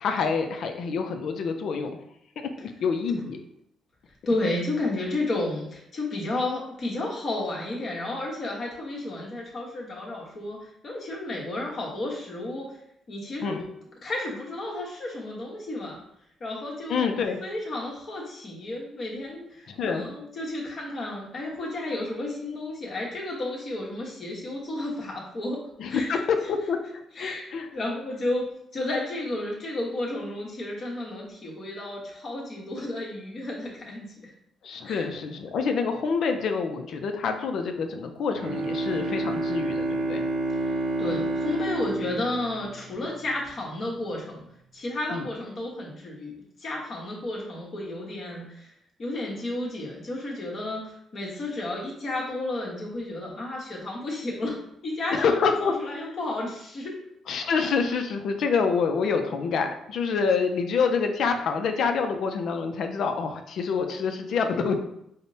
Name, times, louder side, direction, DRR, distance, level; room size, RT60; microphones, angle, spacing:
voice 1, 0.0-1.9 2.4-3.4 13.4-13.6 16.9-17.4 19.7-20.1 25.8-26.8 27.2-27.7 34.6-40.2 45.1-45.3 55.1-56.0 57.3-64.8, left 5 dB, 70° left, 6 dB, 0.4 m, -27 dB
voice 2, 4.3-12.8 13.1-13.6 14.0-16.0 16.4-17.1 17.4-25.6 25.9-26.2 27.1-27.5 27.7-34.3 34.8-35.0 40.6-44.5 44.7-46.3 46.6-48.7 49.0-54.6 54.8-57.0, left 2 dB, 50° left, -3 dB, 1.1 m, -32 dB
Bowed string instrument, 38.3-43.3, right 2 dB, 80° right, 0.5 m, -29 dB
5.1 x 2.0 x 2.7 m, 0.75 s
cardioid pair, 90°, 0 cm